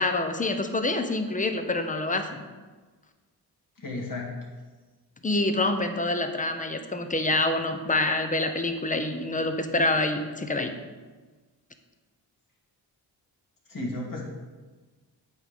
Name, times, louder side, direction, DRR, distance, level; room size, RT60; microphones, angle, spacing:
voice 1, 0.0-2.4 5.2-10.7, left 2 dB, 20° left, 7 dB, 0.9 m, -26 dB
voice 2, 3.8-4.3 13.7-14.2, left 2 dB, 50° left, -3 dB, 2.7 m, -33 dB
8.4 x 3.9 x 6.7 m, 1.3 s
cardioid pair, 75°, 41 cm